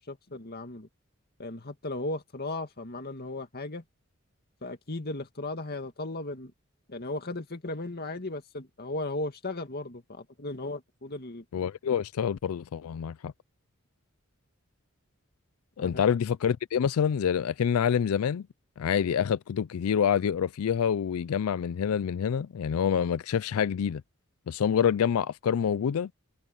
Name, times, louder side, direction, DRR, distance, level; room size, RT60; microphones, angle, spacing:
voice 1, 0.1-0.9 1.4-3.8 4.6-6.5 6.9-11.4 15.8-16.0, left 2 dB, 45° left, 2.2 m, -36 dB
voice 2, 11.5-13.3 15.8-18.5 18.8-24.0 24.5-26.1, left 8 dB, 85° left, 0.4 m, -27 dB
head